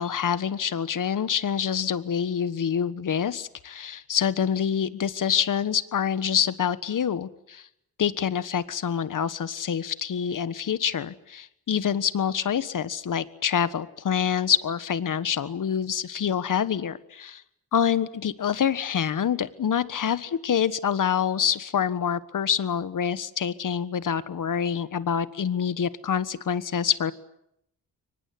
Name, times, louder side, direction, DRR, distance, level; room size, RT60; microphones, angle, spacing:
voice 1, 0.0-7.7 8.0-17.4 17.7-27.1, left 8 dB, 60° left, 15 dB, 1.4 m, -26 dB
23.5 x 20.0 x 9.7 m, 0.79 s
cardioid pair, 80°, 36 cm